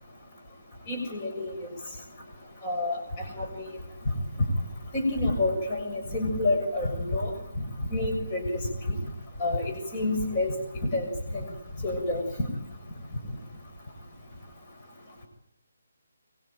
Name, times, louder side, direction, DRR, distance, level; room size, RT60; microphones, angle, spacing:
voice 1, 0.9-1.5 2.6-3.0 3.4-3.7 4.9-7.3 7.9-9.0 9.4-10.5 10.9-11.1 11.3-11.5 11.8-12.5, left 2 dB, 25° left, 2 dB, 7.0 m, -28 dB
24.0 x 23.0 x 9.2 m, 0.74 s
figure-of-eight pair, 150°, 0 cm